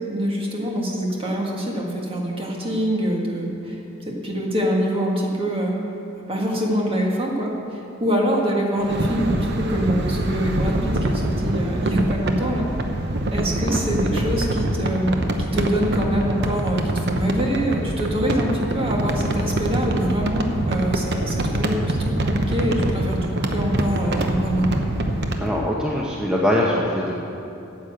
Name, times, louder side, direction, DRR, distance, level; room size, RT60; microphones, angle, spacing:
voice 1, 0.1-3.8 4.1-5.8 6.3-12.7 13.3-24.8, equal, 30° right, -1 dB, 1.8 m, -24 dB
sound 1, 8.8-25.5, right 1 dB, 55° right, 0.9 m, -24 dB
voice 2, 25.4-27.1, left 1 dB, 5° right, -4 dB, 0.8 m, -22 dB
9.8 x 8.4 x 7.6 m, 2.9 s
head